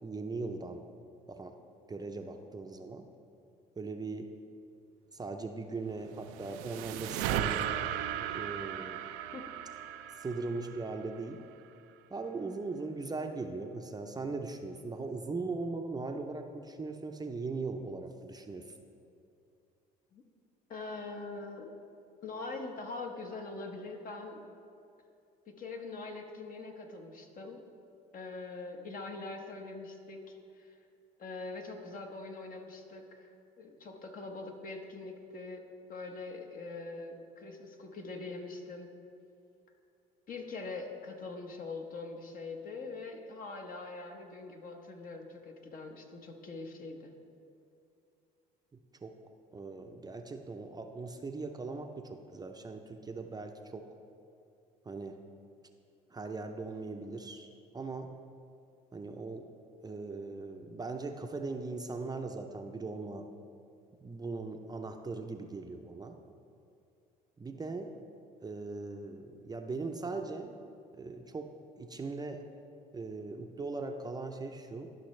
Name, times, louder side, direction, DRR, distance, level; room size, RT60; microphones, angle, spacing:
voice 1, 0.0-0.8 1.3-1.6 1.9-3.1 3.8-4.3 5.1-7.9 8.3-9.0 10.1-11.4 12.1-18.7 49.0-49.2 49.5-53.9 54.9-55.3 56.1-57.5 57.7-58.1 58.9-59.5 59.8-63.3 64.0-66.2 67.4-68.0 68.4-70.6 70.9-72.4 72.9-74.9, right 3 dB, 20° right, 5 dB, 0.6 m, -39 dB
sound 1, 6.0-11.4, right 11 dB, 85° right, 0.4 m, -36 dB
voice 2, 20.7-21.7 22.2-24.4 25.5-27.6 28.1-30.8 31.2-33.3 33.6-35.6 35.9-38.9 40.3-47.1, left 3 dB, 50° left, 3 dB, 1.1 m, -43 dB
13.0 x 5.7 x 3.2 m, 2.6 s
supercardioid pair, 80°, 19 cm